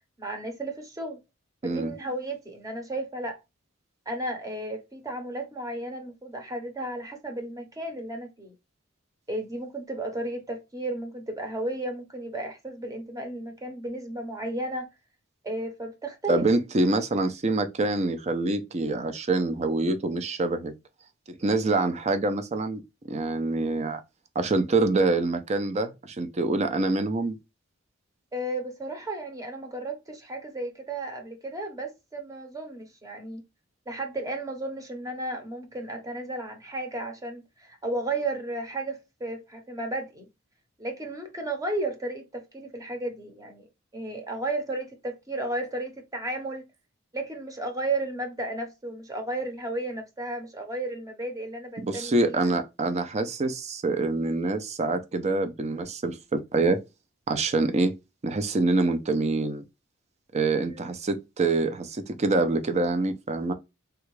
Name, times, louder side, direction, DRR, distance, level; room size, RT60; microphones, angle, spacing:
voice 1, 0.2-1.2 1.6-3.4 4.1-8.5 9.3-14.9 15.4-16.4 28.3-33.4 33.9-40.3 40.8-43.7 43.9-46.7 47.1-52.5 60.6-60.9, right 2 dB, 20° right, 0.8 m, -34 dB
voice 2, 16.3-20.7 21.4-22.8 23.1-24.0 24.4-27.4 51.8-56.8 57.3-57.9 58.2-59.6 60.3-63.5, right 2 dB, 35° right, 0.5 m, -25 dB
3.4 x 2.4 x 3.1 m
head